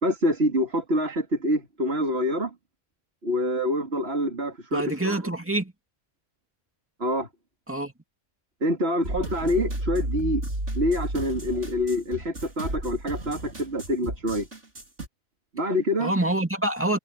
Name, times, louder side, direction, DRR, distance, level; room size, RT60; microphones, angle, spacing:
voice 1, 0.0-2.5 3.2-5.2 7.0-7.3 8.6-10.4 10.7-14.5 15.5-16.1, equal, 55° right, 3.1 m, -26 dB
voice 2, 4.7-5.7 7.7-7.9 16.0-17.0, right 1 dB, 10° right, 2.4 m, -26 dB
sound 1, 9.0-15.1, right 1 dB, 75° right, 5.5 m, -33 dB
omnidirectional pair, 1.2 m